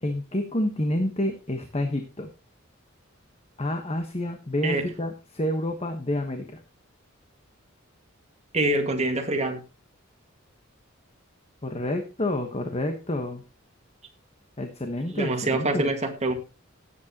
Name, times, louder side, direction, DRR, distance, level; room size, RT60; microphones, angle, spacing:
voice 1, 0.0-2.3 3.6-6.6 11.6-13.4 14.6-15.9, left 1 dB, 30° left, 6 dB, 1.2 m, -29 dB
voice 2, 8.5-9.6 15.1-16.3, right 2 dB, 35° right, 4 dB, 1.7 m, -25 dB
17.5 x 8.3 x 2.9 m, 0.30 s
head